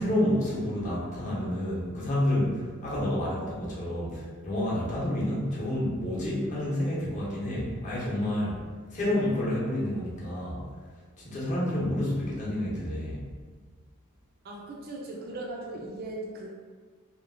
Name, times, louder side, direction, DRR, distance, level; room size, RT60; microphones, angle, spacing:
voice 1, 0.0-8.6 8.9-10.6 11.2-13.3, left 1 dB, 35° left, -7 dB, 0.8 m, -29 dB
voice 2, 14.4-16.5, right 2 dB, 45° right, -2 dB, 0.4 m, -38 dB
2.9 x 2.7 x 2.6 m, 1.5 s
head